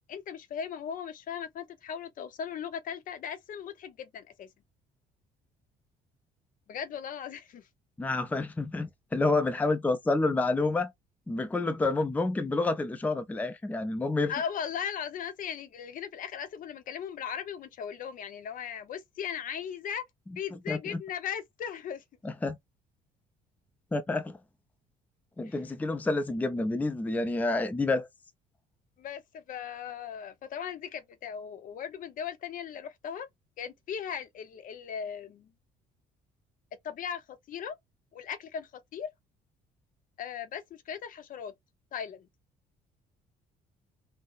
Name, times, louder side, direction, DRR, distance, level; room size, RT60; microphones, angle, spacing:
voice 1, 0.1-4.5 6.7-7.6 14.3-20.0 20.4-22.0 25.4-25.6 29.0-33.3 33.6-35.5 36.8-37.8 38.1-39.1 40.2-41.5 41.9-42.3, left 8 dB, 55° left, 0.6 m, -38 dB
voice 2, 8.0-10.9 11.3-14.3 20.7-21.0 22.2-22.6 23.9-24.4 25.4-28.1, left 2 dB, 10° left, 0.4 m, -28 dB
3.7 x 2.1 x 2.3 m
cardioid pair, 110°, 17 cm